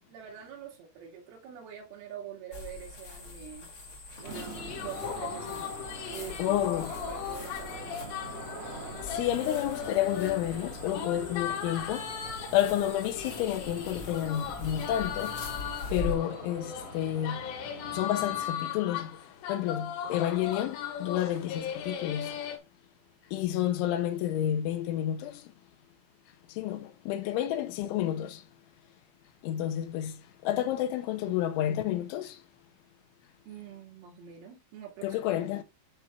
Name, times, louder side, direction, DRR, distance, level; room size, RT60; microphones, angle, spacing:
voice 1, 0.1-3.7 4.2-5.7 6.1-8.0 33.5-35.4, right 8 dB, 85° right, 4.8 m, -45 dB
sound 1, 2.5-16.1, left 3 dB, 50° left, 1.5 m, -43 dB
sound 2, 4.2-18.5, right 4 dB, 55° right, 1.6 m, -45 dB
sound 3, 4.3-22.6, left 9 dB, 70° left, 3.2 m, -38 dB
voice 2, 6.4-6.9 9.0-12.1 12.5-15.4 15.9-17.5 17.9-19.1 19.5-22.4 23.3-25.4 26.5-28.4 29.4-32.4 35.0-35.6, left 12 dB, 85° left, 3.2 m, -30 dB
12.5 x 4.4 x 2.5 m
omnidirectional pair, 5.5 m